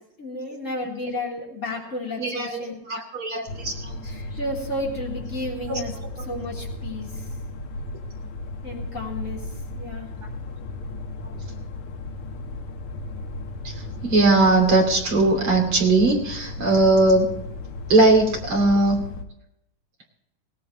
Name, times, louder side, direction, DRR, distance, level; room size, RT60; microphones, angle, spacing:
voice 1, 0.2-2.8 4.0-5.9 6.2-7.3 8.6-9.4 9.7-10.1, left 1 dB, 20° left, -3 dB, 2.9 m, -32 dB
voice 2, 2.2-3.9 5.7-5.8 13.6-17.3 17.9-19.0, right 2 dB, 35° right, 1 dB, 2.7 m, -20 dB
sound 1, 3.5-19.2, left 2 dB, 85° left, 1.6 m, -35 dB
20.5 x 17.0 x 3.1 m, 0.81 s
omnidirectional pair, 5.7 m